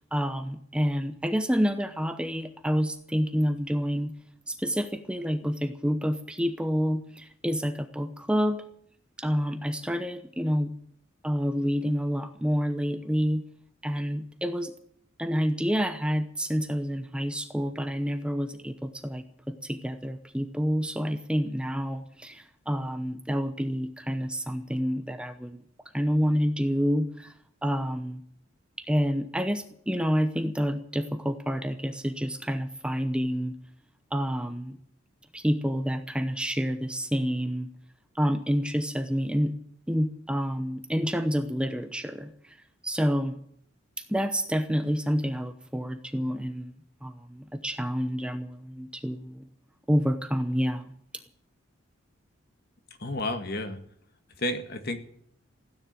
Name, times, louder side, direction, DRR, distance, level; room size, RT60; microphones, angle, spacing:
voice 1, 0.1-4.1 4.5-8.6 9.2-10.7 11.2-13.4 13.8-14.7 15.2-25.6 25.9-27.3 27.6-28.2 28.8-33.6 34.1-34.8 35.3-37.7 38.1-39.5 39.9-42.6 42.8-43.4 44.0-46.7 47.0-49.5 49.9-50.9, equal, 5° right, 8 dB, 0.8 m, -28 dB
voice 2, 53.0-53.8 54.4-55.0, left 1 dB, 50° left, 7 dB, 2.1 m, -31 dB
16.0 x 9.9 x 9.1 m, 0.66 s
head